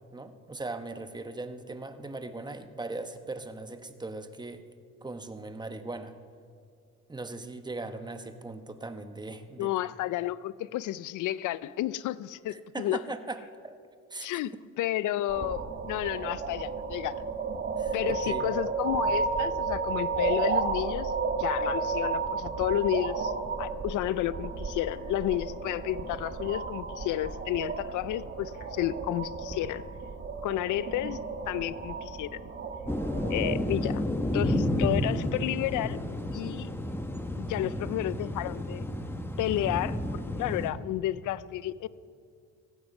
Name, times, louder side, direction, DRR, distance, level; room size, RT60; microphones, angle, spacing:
voice 1, 0.1-4.6 5.0-6.1 7.1-9.7 12.5-13.8 14.1-14.4 17.8-18.5, right 2 dB, 15° right, 1.1 m, -39 dB
voice 2, 9.6-13.0 14.2-17.2 17.9-21.1 21.4-23.3 23.6-29.8 30.4-32.4 33.3-34.0 34.3-36.0 36.3-36.7 37.4-38.9 39.4-41.9, left 14 dB, 80° left, 0.5 m, -31 dB
sound 1, 15.3-33.6, right 4 dB, 40° right, 1.5 m, -33 dB
sound 2, 32.9-40.7, left 1 dB, 10° left, 1.4 m, -31 dB
17.5 x 15.0 x 5.4 m
cardioid pair, 90°, 30 cm